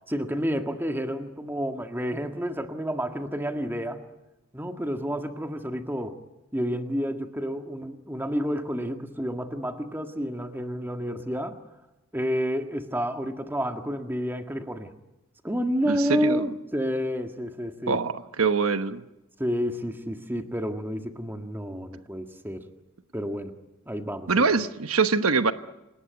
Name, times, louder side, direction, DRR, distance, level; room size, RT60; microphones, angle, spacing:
voice 1, 0.1-4.0 4.5-6.2 6.5-11.6 12.1-14.9 15.4-18.0 19.4-22.7 23.1-23.5 23.9-24.4, equal, 10° right, 5 dB, 1.7 m, -30 dB
voice 2, 15.9-16.4 17.9-19.0 24.3-25.5, right 4 dB, 90° right, 10 dB, 1.1 m, -24 dB
28.0 x 19.0 x 9.5 m, 0.97 s
head